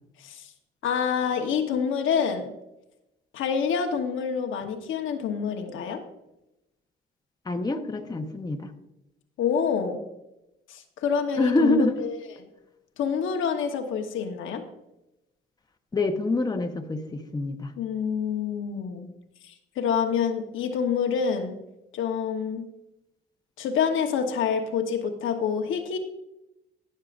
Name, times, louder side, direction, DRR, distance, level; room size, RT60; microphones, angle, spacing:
voice 1, 0.8-2.5 3.3-6.0 9.4-10.0 10.7-12.1 13.0-14.6 17.8-19.1 19.8-21.6 21.9-22.7 23.6-26.0, left 7 dB, 80° left, 4 dB, 1.1 m, -27 dB
voice 2, 7.5-8.7 11.4-12.0 15.9-17.7, left 2 dB, 20° left, 4 dB, 1.0 m, -26 dB
18.5 x 6.6 x 2.5 m, 0.91 s
cardioid pair, 90°, 20 cm